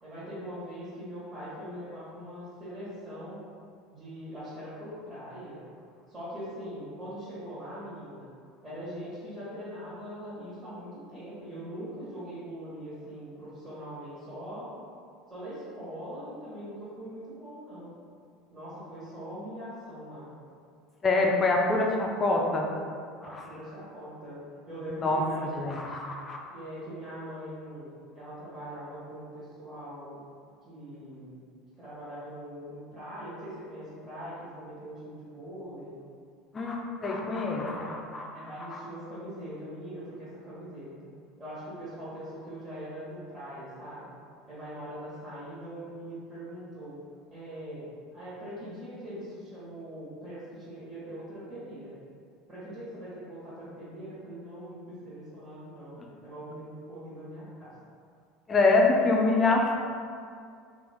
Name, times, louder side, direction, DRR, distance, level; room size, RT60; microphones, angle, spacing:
voice 1, 0.0-3.4 3.9-5.6 6.1-8.3 8.6-14.7 15.3-17.9 18.5-20.3 23.2-24.4 24.7-25.5 26.5-30.2 30.6-31.4 31.8-36.0 38.3-41.1 41.4-44.1 44.4-47.0 47.3-51.9 52.5-57.7, equal, 20° right, -12 dB, 1.4 m, -42 dB
voice 2, 21.0-22.7 23.3-23.4 24.9-25.2 25.5-26.4 36.5-38.3 38.6-38.8 56.0-56.1 58.5-59.8, left 3 dB, 25° left, 0 dB, 0.5 m, -25 dB
3.4 x 2.5 x 3.5 m, 2.3 s
supercardioid pair, 110°, 0 cm